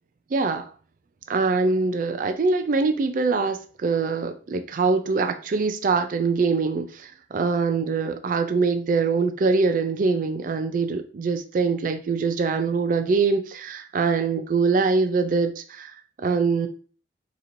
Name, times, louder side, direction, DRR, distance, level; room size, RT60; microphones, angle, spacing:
voice 1, 0.3-0.7 1.3-15.9 16.2-16.7, right 4 dB, 50° right, 0.4 m, -23 dB
4.1 x 3.0 x 2.6 m
head